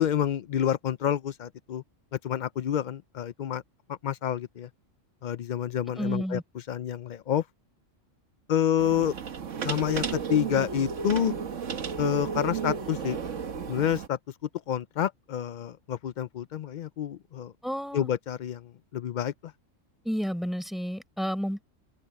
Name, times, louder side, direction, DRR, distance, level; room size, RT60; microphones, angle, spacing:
voice 1, 0.0-1.8 2.2-3.6 3.9-4.7 5.2-6.4 6.7-7.4 8.5-9.1 9.6-11.4 12.0-13.2 13.7-14.2 14.7-17.5 17.9-19.3, left 10 dB, 85° left, 0.4 m, -28 dB
voice 2, 6.0-6.4 17.6-18.1 20.0-21.6, equal, ahead, 4.9 m, -31 dB
sound 1, 8.8-14.1, right 6 dB, 70° right, 1.5 m, -33 dB
open air
omnidirectional pair, 1.4 m